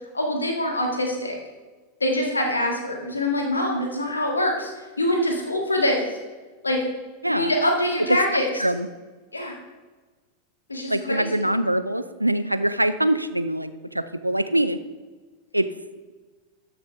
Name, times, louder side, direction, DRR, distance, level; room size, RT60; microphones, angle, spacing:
voice 1, 0.1-1.4 2.0-6.0 6.6-6.8 7.3-8.6 9.3-9.6 10.7-11.5, left 1 dB, 80° left, 2 dB, 1.8 m, -24 dB
voice 2, 10.9-14.8 15.5-15.7, right 1 dB, 85° right, 12 dB, 0.5 m, -24 dB
13.0 x 6.2 x 3.4 m, 1.3 s
figure-of-eight pair, 90°, 0 cm